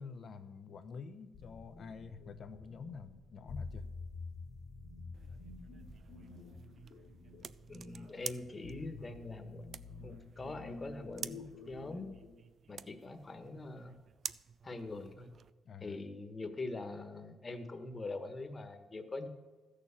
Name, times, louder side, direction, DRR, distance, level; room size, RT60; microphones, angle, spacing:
voice 1, 0.0-3.9 15.6-16.0, left 5 dB, 50° left, 10 dB, 0.8 m, -48 dB
sound 1, 1.3-12.4, left 4 dB, 85° left, 2.1 m, -49 dB
sound 2, 5.1-15.5, right 7 dB, 50° right, 0.4 m, -50 dB
voice 2, 7.7-9.6 10.0-12.1 12.7-13.9 14.6-15.3 15.8-19.3, left 2 dB, 25° left, 8 dB, 1.4 m, -43 dB
13.5 x 6.7 x 7.2 m, 1.3 s
cardioid pair, 100°, 0 cm